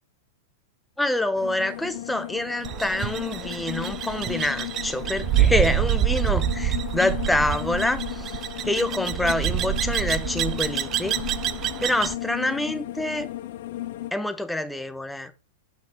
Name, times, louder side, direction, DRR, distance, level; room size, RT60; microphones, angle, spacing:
voice 1, 1.0-8.4 8.6-11.2 11.8-13.3 14.1-15.3, left 1 dB, 5° left, 0.7 m, -26 dB
sound 1, 1.3-14.1, left 14 dB, 65° left, 0.6 m, -35 dB
sound 2, 2.6-12.2, right 12 dB, 30° right, 0.5 m, -27 dB
6.8 x 5.9 x 4.4 m
supercardioid pair, 140°, 0 cm